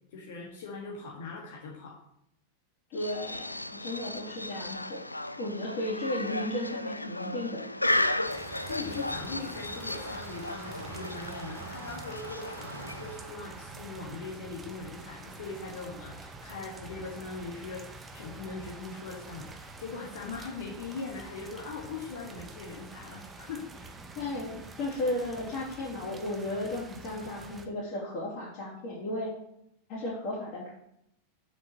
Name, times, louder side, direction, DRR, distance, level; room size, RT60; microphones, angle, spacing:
voice 1, 0.1-2.0 8.4-24.0, left 4 dB, 55° left, -2 dB, 1.8 m, -41 dB
sound 1, 2.9-13.3, left 1 dB, 85° left, 0.5 m, -35 dB
voice 2, 2.9-5.0 5.4-7.6 24.1-29.3 29.9-30.7, left 1 dB, 40° left, -8 dB, 3.2 m, -34 dB
sound 2, 8.2-27.7, right 3 dB, 15° right, 1.1 m, -46 dB
7.8 x 5.8 x 6.6 m, 0.76 s
figure-of-eight pair, 90°, 0 cm